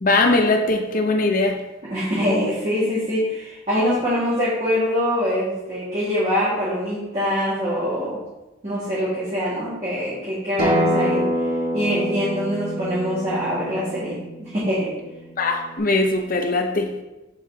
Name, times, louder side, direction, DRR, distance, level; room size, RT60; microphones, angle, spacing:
voice 1, 0.0-1.6 15.4-16.9, left 2 dB, 40° left, 4 dB, 0.6 m, -20 dB
voice 2, 1.8-8.2 8.6-11.2 11.7-14.9, equal, 30° right, -10 dB, 1.6 m, -24 dB
Acoustic guitar, 10.6-15.8, equal, 50° right, 1.7 m, -26 dB
7.5 x 3.9 x 3.7 m, 1.0 s
head